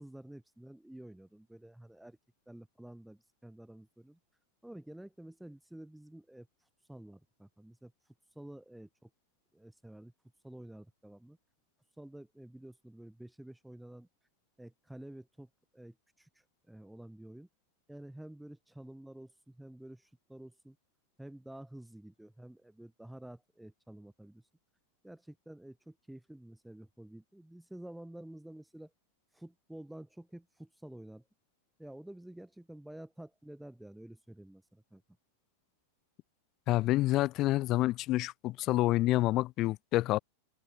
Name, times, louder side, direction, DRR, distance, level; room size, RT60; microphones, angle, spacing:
voice 1, 0.0-2.2 2.5-4.2 4.6-6.5 6.9-7.9 8.4-9.1 9.5-10.1 10.4-11.4 12.0-14.1 14.6-17.5 17.9-20.8 21.2-24.4 25.0-28.9 29.3-31.2 31.8-35.0, right 1 dB, 5° right, 5.4 m, -50 dB
voice 2, 36.7-40.2, left 17 dB, 35° left, 0.4 m, -28 dB
figure-of-eight pair, 90°, 0 cm